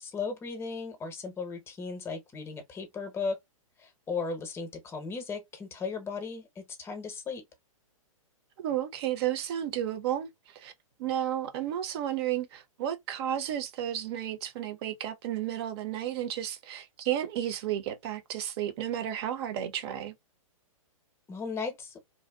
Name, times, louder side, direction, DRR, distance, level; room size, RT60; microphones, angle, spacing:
voice 1, 0.0-3.4 3.8-7.4 21.3-22.0, left 4 dB, 15° left, 0.7 m, -36 dB
voice 2, 8.6-10.7 11.0-20.1, right 11 dB, 45° right, 0.7 m, -32 dB
2.6 x 2.2 x 2.2 m
hypercardioid pair, 130°, 18 cm